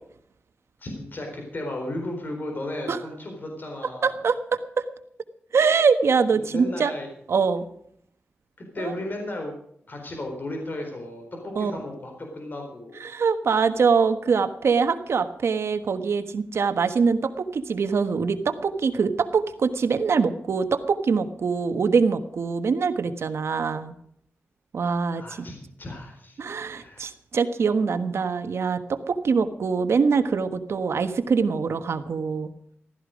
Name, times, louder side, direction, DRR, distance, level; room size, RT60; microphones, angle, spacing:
voice 1, 0.8-4.1 6.5-7.1 8.6-9.5 9.9-13.0 25.1-26.4 26.8-27.1, left 1 dB, 45° left, 2 dB, 4.2 m, -34 dB
voice 2, 4.0-4.6 5.5-6.9 7.3-7.6 8.8-8.9 11.6-11.7 13.0-23.9 24.7-25.5 26.4-32.5, right 5 dB, 80° right, 9 dB, 1.3 m, -23 dB
15.0 x 13.5 x 5.2 m, 0.68 s
wide cardioid pair, 115°, 4 cm